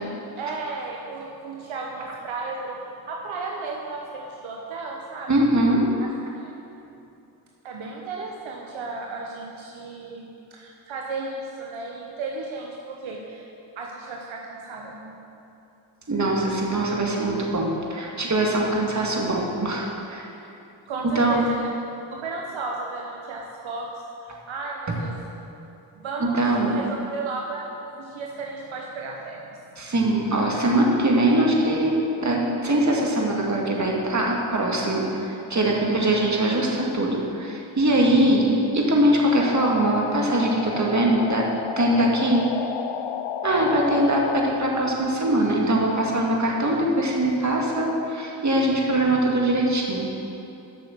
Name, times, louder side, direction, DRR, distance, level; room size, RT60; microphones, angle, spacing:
voice 1, 0.4-2.8 3.1-5.3 6.0-6.1 6.4-6.5 7.6-13.5 13.8-15.2 20.9-21.7 22.1-23.9 24.2-25.1 26.0-29.6, right 3 dB, 70° right, -1 dB, 1.0 m, -34 dB
voice 2, 5.3-5.8 16.1-20.3 21.2-21.4 24.9-25.0 26.2-26.7 29.8-41.5 41.8-42.4 43.4-50.1, right 1 dB, 35° right, -1 dB, 2.1 m, -22 dB
sound 1, 39.4-44.5, left 9 dB, 75° left, 0.6 m, -32 dB
8.2 x 6.4 x 6.7 m, 2.8 s
supercardioid pair, 40°, 48 cm